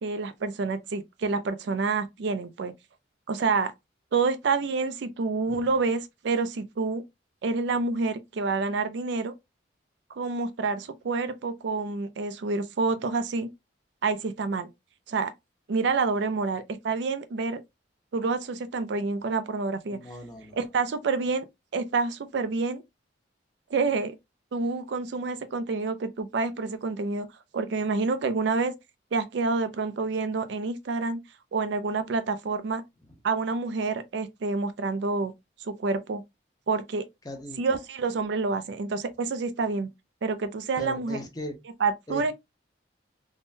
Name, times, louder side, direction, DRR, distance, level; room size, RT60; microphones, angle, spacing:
voice 1, 0.0-2.7 3.3-3.7 4.1-7.0 7.4-9.3 10.2-13.5 14.0-14.7 15.1-15.3 15.7-17.6 18.1-20.0 20.5-21.4 21.7-22.8 23.7-24.1 24.5-27.3 27.5-28.7 29.1-31.2 31.5-32.8 33.2-35.3 35.7-36.2 36.7-37.1 37.6-39.9 40.2-41.2 41.8-42.3, right 4 dB, 65° right, 0.4 m, -28 dB
voice 2, 19.9-20.6 37.2-37.6 40.8-41.5 42.1-42.3, left 1 dB, 20° left, 0.6 m, -38 dB
3.5 x 2.1 x 2.5 m
head